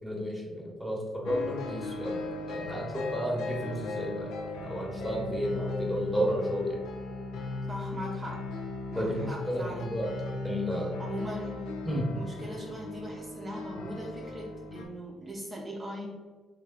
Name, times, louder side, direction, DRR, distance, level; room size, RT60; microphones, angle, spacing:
voice 1, 0.0-2.2 2.5-4.3 4.6-6.8 8.9-10.1 10.4-11.0 11.8-12.1, equal, 5° left, -2 dB, 1.0 m, -32 dB
sound 1, 1.3-14.9, left 3 dB, 90° left, 0.5 m, -37 dB
voice 2, 7.7-8.4 8.9-9.9 11.0-11.7 12.1-16.1, equal, 25° right, -3 dB, 0.6 m, -40 dB
3.1 x 2.7 x 3.7 m, 1.3 s
cardioid pair, 90°, 0 cm